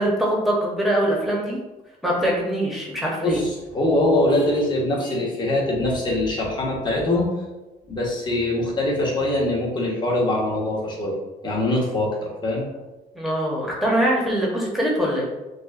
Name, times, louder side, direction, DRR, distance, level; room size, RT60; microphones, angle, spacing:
voice 1, 0.0-1.6 2.0-3.4 13.1-15.3, right 1 dB, ahead, -4 dB, 0.9 m, -23 dB
voice 2, 3.2-7.3 7.9-11.2 11.4-12.6, left 1 dB, 25° left, -3 dB, 1.1 m, -23 dB
6.0 x 2.2 x 2.4 m, 1.1 s
cardioid pair, 110°, 17 cm